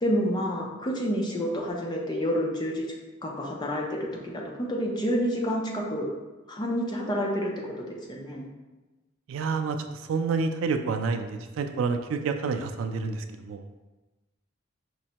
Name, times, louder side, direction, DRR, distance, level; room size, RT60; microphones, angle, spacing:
voice 1, 0.0-2.9 3.2-6.1 6.5-8.5, equal, 20° left, -1 dB, 0.5 m, -29 dB
voice 2, 9.3-13.6, right 4 dB, 75° right, 7 dB, 0.3 m, -29 dB
5.2 x 2.1 x 2.8 m, 1.1 s
head